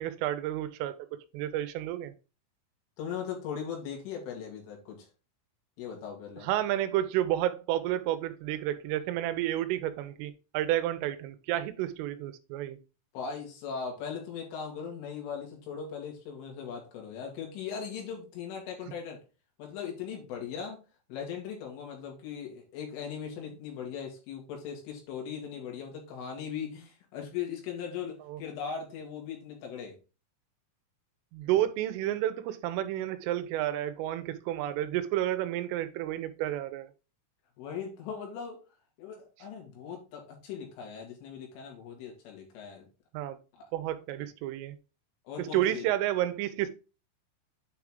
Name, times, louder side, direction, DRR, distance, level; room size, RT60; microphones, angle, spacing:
voice 1, 0.0-2.1 6.4-12.8 28.3-28.4 31.3-36.9 43.1-43.4 43.7-44.8 45.4-46.7, right 13 dB, 85° right, 3.2 m, -31 dB
voice 2, 3.0-5.1 5.8-6.5 13.1-19.2 19.6-20.8 21.1-29.9 37.6-38.6 39.0-42.9 43.5-43.7 44.2-44.3 45.3-45.9, left 7 dB, 75° left, 4.7 m, -39 dB
9.0 x 4.7 x 3.7 m
omnidirectional pair, 5.8 m